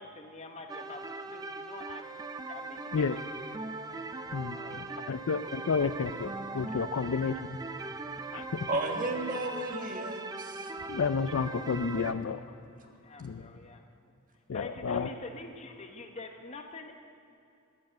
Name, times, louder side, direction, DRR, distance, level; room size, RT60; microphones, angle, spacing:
voice 1, 0.0-2.1 2.5-4.0 4.5-5.1 12.5-12.6 12.8-13.9 14.5-17.0, left 3 dB, 30° left, 5 dB, 0.9 m, -46 dB
sound 1, 0.7-12.1, right 3 dB, 15° right, 0.5 m, -40 dB
voice 2, 4.3-7.6 8.3-8.7 10.9-12.5 13.2-13.5 14.5-15.1, left 5 dB, 60° left, 12 dB, 0.4 m, -31 dB
voice 3, 8.7-10.7, right 2 dB, 35° right, 3 dB, 1.3 m, -33 dB
13.0 x 9.6 x 7.7 m, 2.7 s
head